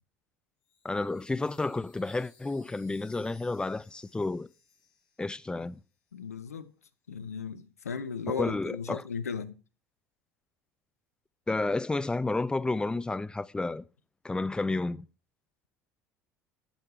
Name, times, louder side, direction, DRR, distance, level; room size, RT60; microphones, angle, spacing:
Chime, 0.6-6.2, left 5 dB, 60° left, 2.6 m, -64 dB
voice 1, 0.8-4.5 5.2-5.8 8.3-9.0 11.5-13.8 14.2-15.0, left 3 dB, 10° left, 0.5 m, -31 dB
voice 2, 6.1-6.7 7.1-9.6, left 6 dB, 85° left, 0.6 m, -36 dB
12.0 x 6.6 x 4.8 m
figure-of-eight pair, 65°, 8 cm